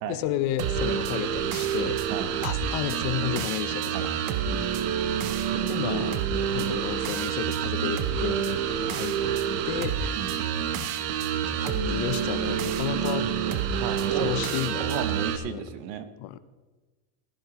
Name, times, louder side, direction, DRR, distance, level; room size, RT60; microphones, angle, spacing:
voice 1, 0.1-2.0 2.4-4.0 5.7-6.2 6.5-9.2 9.6-10.0 11.5-13.3 14.1-15.6 16.2-16.4, left 12 dB, 50° left, 13 dB, 0.8 m, -32 dB
sound 1, 0.6-15.4, right 8 dB, 60° right, 1.1 m, -28 dB
voice 2, 3.9-4.4 10.1-10.4 11.5-11.6 13.5-14.4 14.8-16.0, right 9 dB, 90° right, 10 dB, 1.4 m, -35 dB
16.0 x 14.0 x 3.0 m, 1.3 s
cardioid pair, 175°, 49 cm